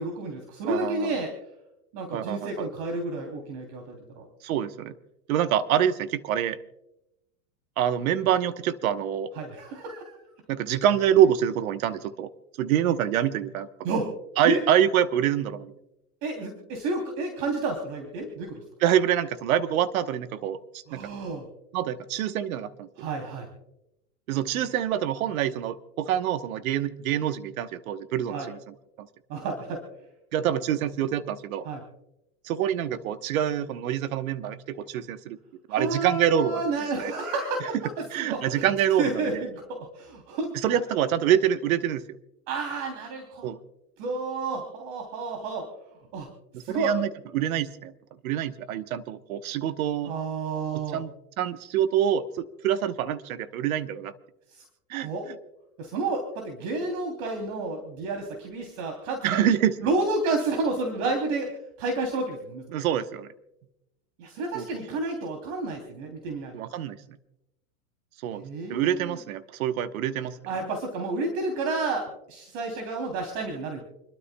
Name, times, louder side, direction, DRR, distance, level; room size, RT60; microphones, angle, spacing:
voice 1, 0.0-1.3 1.9-4.2 9.3-10.2 13.8-14.1 14.4-14.6 16.2-18.6 20.9-21.5 23.0-23.5 28.3-28.5 29.3-29.8 31.7-31.8 35.7-38.7 39.0-40.5 42.5-43.5 44.0-45.7 46.1-46.3 46.6-46.9 50.0-51.0 54.5-54.6 54.9-55.3 55.8-59.5 59.8-62.6 64.2-66.5 68.3-69.2 70.5-73.8, right 3 dB, 55° right, 3 dB, 3.2 m, -30 dB
voice 2, 0.7-1.1 2.1-2.7 4.4-4.9 5.3-6.6 7.8-9.3 10.5-12.3 12.6-14.0 14.4-15.7 18.8-20.6 20.9-21.1 21.7-22.9 24.3-28.6 29.0-29.1 30.3-31.7 32.4-35.4 35.7-36.6 37.0-37.1 38.1-39.4 40.5-42.0 43.4-43.6 46.5-47.1 47.3-47.9 48.2-50.1 50.7-54.1 54.9-55.1 59.2-59.8 62.7-63.3 64.5-64.8 66.5-67.0 68.2-68.4 68.7-70.4, right 10 dB, 75° right, 11 dB, 1.1 m, -26 dB
29.0 x 12.5 x 2.2 m, 0.88 s
hypercardioid pair, 120°, 43 cm